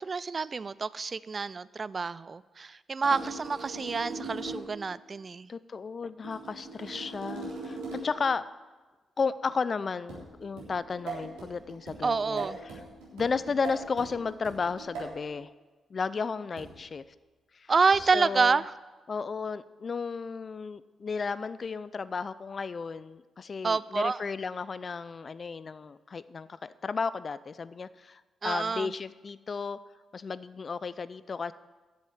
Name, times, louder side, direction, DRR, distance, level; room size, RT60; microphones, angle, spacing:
voice 1, 0.0-5.5 12.0-12.6 17.7-18.7 23.6-24.2 28.4-28.9, right 4 dB, 45° right, 19 dB, 0.4 m, -28 dB
sound 1, 3.0-4.8 6.2-8.3 10.1-15.2 16.6-16.9 17.9-18.2, right 3 dB, 85° right, 3.5 m, -41 dB
voice 2, 5.5-8.4 9.2-12.7 13.1-15.5 15.9-17.0 17.5-17.7 18.0-18.6 19.1-29.8 30.1-31.5, left 5 dB, 50° left, 16 dB, 0.5 m, -33 dB
10.5 x 7.5 x 8.1 m, 1.2 s
hypercardioid pair, 45°, 0 cm